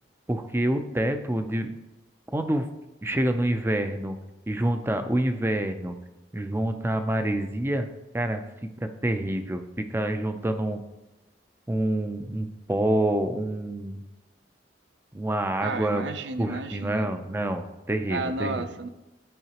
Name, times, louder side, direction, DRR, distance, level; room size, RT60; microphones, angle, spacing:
voice 1, 0.3-1.7 2.3-2.7 3.0-4.2 4.5-6.0 6.3-7.9 8.1-8.4 8.8-10.8 11.7-14.0 15.1-16.0 16.4-18.7, right 1 dB, 15° right, 7 dB, 0.5 m, -27 dB
voice 2, 15.6-17.1 18.1-18.9, right 3 dB, 80° right, 10 dB, 0.5 m, -32 dB
11.0 x 4.8 x 2.9 m, 1.0 s
head